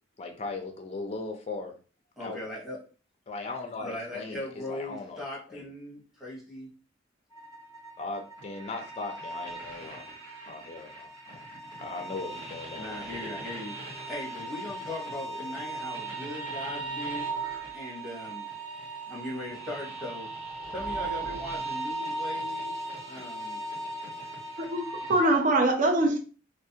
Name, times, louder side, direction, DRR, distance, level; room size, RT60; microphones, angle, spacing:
voice 1, 0.2-1.8 2.2-2.4 3.3-5.2 5.5-5.6 8.0-10.1 10.5-11.1 11.8-13.4, left 3 dB, 35° left, 0.4 m, -38 dB
voice 2, 2.2-2.8 3.8-6.7 9.8-9.9 10.6-10.7 12.7-17.3 17.7-18.5 19.1-20.3 20.7-22.7 23.1-23.6, left 1 dB, ahead, 0.9 m, -39 dB
sound 1, 7.3-25.4, right 2 dB, 25° right, 1.2 m, -38 dB
voice 3, 24.7-26.2, right 2 dB, 40° right, 0.4 m, -23 dB
2.4 x 2.1 x 2.7 m
head